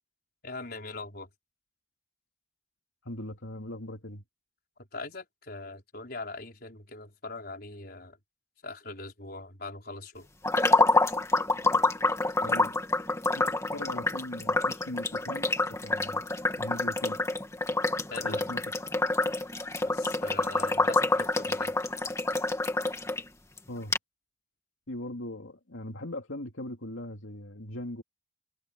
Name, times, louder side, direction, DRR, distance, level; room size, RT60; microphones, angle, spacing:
voice 1, 0.4-1.3 4.9-8.2 8.6-10.3 18.1-18.4 19.8-21.7, left 3 dB, 50° left, 4.9 m, -41 dB
voice 2, 3.0-4.2 12.4-12.7 13.4-16.3 16.6-17.2 18.2-18.7 23.7-24.0 24.9-28.0, left 1 dB, 90° left, 2.6 m, -40 dB
sound 1, 10.4-23.2 23.6-23.7 23.9-24.0, left 2 dB, 15° left, 1.8 m, -27 dB
head